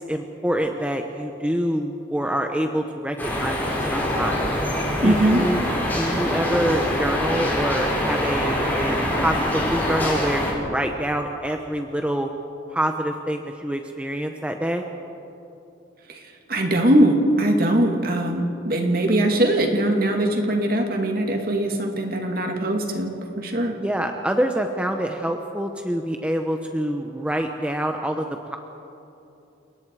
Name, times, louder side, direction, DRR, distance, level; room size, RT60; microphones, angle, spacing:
voice 1, 0.0-4.6 5.0-5.7 5.9-12.3 12.7-14.8 23.8-28.6, right 1 dB, 5° right, 4 dB, 0.8 m, -26 dB
sound 1, 3.2-10.5, left 1 dB, 10° left, 4.6 m, -24 dB
voice 2, 5.0-5.5 16.1-16.2 16.5-23.8, right 1 dB, 50° right, 2 dB, 2.5 m, -21 dB
30.0 x 18.5 x 4.8 m, 2.8 s
head